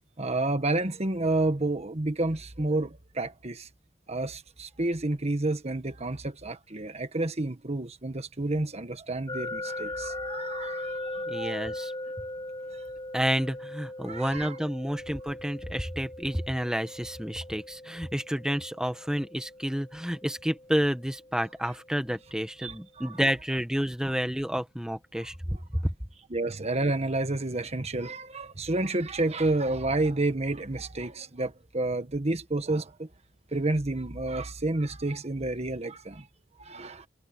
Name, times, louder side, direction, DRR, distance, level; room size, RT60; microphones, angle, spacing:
voice 1, 0.2-3.7 4.1-11.6 14.0-14.6 22.6-23.1 25.2-25.3 26.3-33.1 33.5-36.3 36.6-37.1, right 2 dB, 35° right, 1.4 m, -30 dB
sound 1, 9.3-22.2, left 1 dB, 25° left, 4.8 m, -39 dB
voice 2, 11.3-11.9 13.1-25.3 25.7-25.9, equal, 5° right, 1.5 m, -30 dB
head